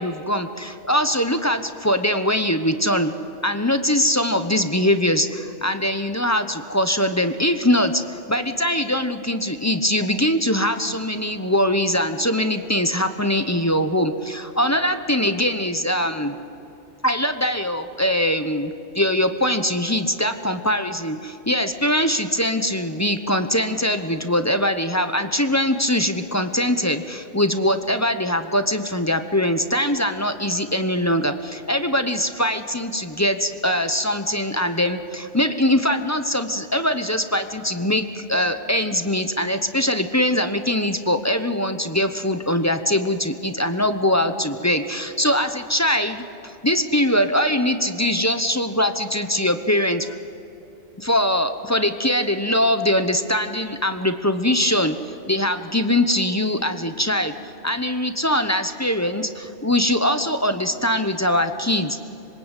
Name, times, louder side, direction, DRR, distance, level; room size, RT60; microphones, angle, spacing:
voice 1, 0.0-3.1 3.4-16.4 17.0-50.2 51.0-57.3 57.6-62.0, left 1 dB, 15° left, 8 dB, 0.9 m, -22 dB
26.0 x 22.0 x 8.3 m, 3.0 s
omnidirectional pair, 1.2 m